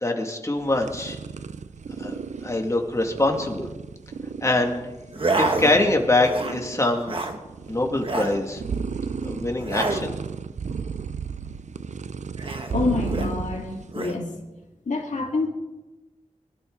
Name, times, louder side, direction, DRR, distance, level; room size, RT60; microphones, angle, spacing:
voice 1, 0.0-1.2 2.0-3.7 4.4-5.0 5.4-7.2 7.7-8.6 9.2-10.1, left 2 dB, 25° left, 2 dB, 2.4 m, -24 dB
sound 1, 0.6-13.9, right 5 dB, 70° right, 0.7 m, -34 dB
sound 2, 5.1-5.9 6.2-6.6 6.9-7.4 8.0-8.4 9.6-10.1 12.4-13.3 13.9-14.2, right 2 dB, 45° right, 1.6 m, -28 dB
voice 2, 12.7-14.3 14.9-15.5, left 4 dB, 80° left, -1 dB, 2.6 m, -26 dB
23.5 x 12.5 x 4.0 m, 1.1 s
wide cardioid pair, 80°, 13 cm